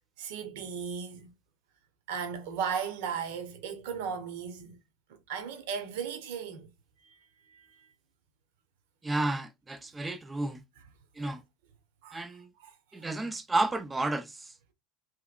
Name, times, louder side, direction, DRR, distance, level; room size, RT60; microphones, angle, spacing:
voice 1, 0.2-1.3 2.1-4.8 5.3-6.7 7.0-7.2 7.5-7.7 11.2-11.3 12.0-12.3 12.6-13.1, right 7 dB, 70° right, 1.0 m, -36 dB
voice 2, 9.0-10.6 11.2-11.4 12.1-12.5 12.9-14.5, right 2 dB, 15° right, 0.5 m, -31 dB
3.4 x 3.1 x 2.3 m
hypercardioid pair, 95°, 0 cm